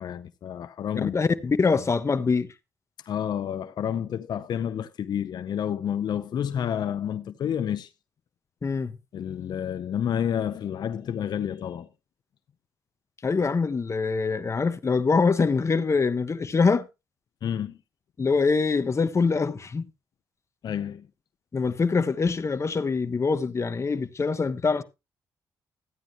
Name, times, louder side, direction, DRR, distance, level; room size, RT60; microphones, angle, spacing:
voice 1, 0.0-1.1 3.1-7.9 9.1-11.9 17.4-17.8 20.6-21.1, left 9 dB, 70° left, 0.7 m, -29 dB
voice 2, 0.9-2.5 8.6-8.9 13.2-16.9 18.2-19.9 21.5-24.8, left 4 dB, 40° left, 1.2 m, -24 dB
14.0 x 9.2 x 2.9 m
cardioid pair, 65°, 8 cm